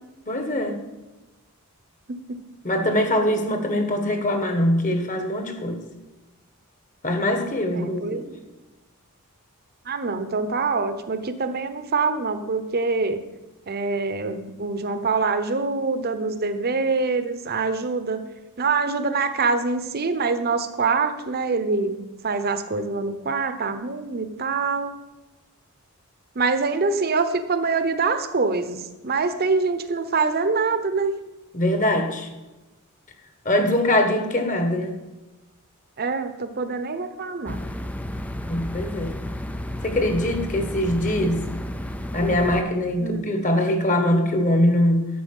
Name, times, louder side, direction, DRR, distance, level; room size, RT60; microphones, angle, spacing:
voice 1, 0.3-0.8 2.6-5.8 7.0-8.2 31.5-32.3 33.4-34.9 38.5-39.1 39.8-41.5 42.1-45.1, left 1 dB, 35° left, 6 dB, 1.5 m, -22 dB
voice 2, 7.7-8.3 9.9-13.2 13.7-18.2 18.6-24.9 26.3-31.1 36.0-37.6 43.0-43.2, right 4 dB, 45° right, 10 dB, 0.9 m, -25 dB
sound 1, 37.5-42.6, left 1 dB, 5° left, 0.4 m, -32 dB
11.0 x 7.7 x 5.5 m, 1.1 s
head